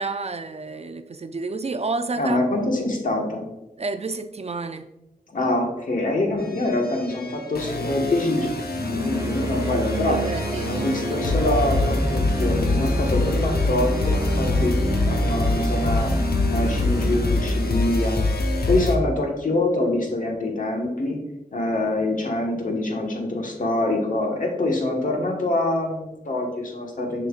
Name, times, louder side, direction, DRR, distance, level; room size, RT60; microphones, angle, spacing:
voice 1, 0.0-2.5 3.8-4.9 10.1-10.7, right 3 dB, 40° right, 10 dB, 0.4 m, -29 dB
voice 2, 2.2-3.4 5.3-8.5 8.9-10.2 10.7-14.7 15.1-16.1 16.5-18.2 18.7-21.2 21.5-27.3, left 2 dB, 55° left, 1 dB, 1.4 m, -25 dB
sound 1, 6.4-19.0, left 2 dB, 75° left, 0.8 m, -25 dB
sound 2, 8.7-18.7, right 1 dB, 20° right, 0.8 m, -29 dB
6.8 x 5.7 x 2.4 m, 0.91 s
cardioid pair, 55°, 16 cm